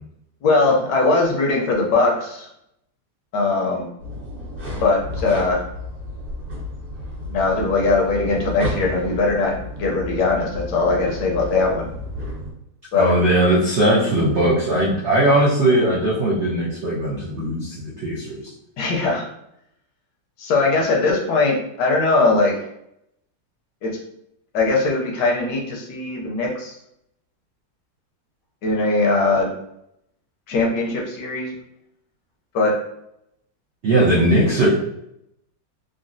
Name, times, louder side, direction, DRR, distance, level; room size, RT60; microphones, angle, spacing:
voice 1, 0.4-2.5 3.3-3.8 4.8-5.6 7.3-11.9 12.9-13.1 18.8-19.3 20.4-22.6 23.8-23.9 24.5-26.7 28.6-29.5 30.5-31.5 32.5-32.7, left 3 dB, 70° left, 0 dB, 1.1 m, -20 dB
sound 1, 4.0-12.5, left 1 dB, 55° right, 1.6 m, -32 dB
voice 2, 12.9-18.5 33.8-34.7, right 1 dB, 75° right, -6 dB, 0.6 m, -19 dB
3.8 x 2.1 x 2.5 m, 0.78 s
omnidirectional pair, 2.1 m